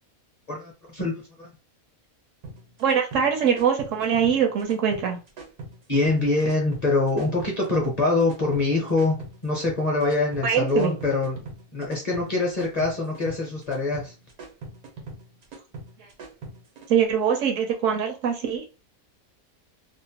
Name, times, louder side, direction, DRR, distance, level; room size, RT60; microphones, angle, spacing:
voice 1, 0.5-1.5 5.9-11.5 11.7-14.1, left 2 dB, 35° left, -2 dB, 0.6 m, -24 dB
sound 1, 2.4-16.9, right 3 dB, 85° right, 1.3 m, -41 dB
voice 2, 2.8-5.2 10.4-10.9 16.0-16.1 16.9-18.6, right 7 dB, 70° right, 4 dB, 0.9 m, -23 dB
2.8 x 2.1 x 2.7 m, 0.31 s
omnidirectional pair, 1.5 m